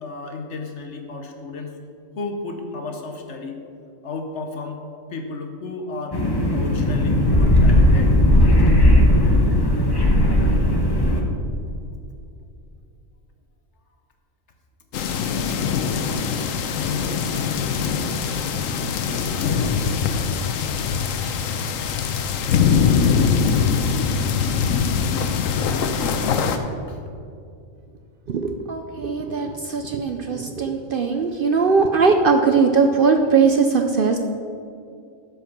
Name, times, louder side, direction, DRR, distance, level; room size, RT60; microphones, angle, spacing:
voice 1, 0.0-1.7 2.2-3.6 4.0-4.8 5.1-6.2 6.5-8.1 18.1-18.2 19.4-19.5 26.9-27.0, left 3 dB, 65° left, 4 dB, 1.3 m, -33 dB
sound 1, 6.1-11.2, left 1 dB, 20° left, 1.0 m, -16 dB
sound 2, 14.9-26.6, left 6 dB, 80° left, 1.1 m, -22 dB
voice 2, 28.3-34.2, right 5 dB, 55° right, 5 dB, 0.6 m, -19 dB
12.5 x 5.3 x 5.9 m, 2.5 s
omnidirectional pair, 1.3 m